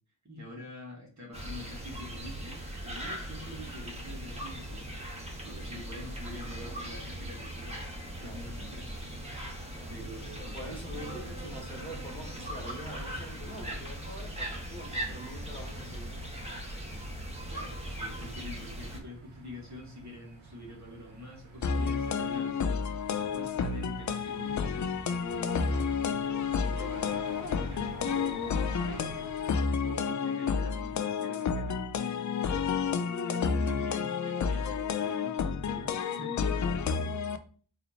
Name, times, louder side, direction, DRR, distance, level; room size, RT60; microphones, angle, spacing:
voice 1, 0.3-5.1 5.4-7.8 8.2-9.1 9.9-11.5 17.5-24.9 25.6-26.2 26.6-29.3 29.8-31.8 32.7-37.1, equal, 35° right, -2 dB, 1.7 m, -46 dB
sound 1, 1.3-19.0, right 1 dB, 15° right, 1.5 m, -39 dB
voice 2, 10.4-16.5 31.6-31.8, equal, 10° left, -1 dB, 1.7 m, -45 dB
sound 2, 15.5-29.6, right 3 dB, 70° right, 1.0 m, -49 dB
sound 3, 21.6-37.4, left 6 dB, 40° left, 0.5 m, -30 dB
4.2 x 2.8 x 2.8 m, 0.42 s
supercardioid pair, 45°, 49 cm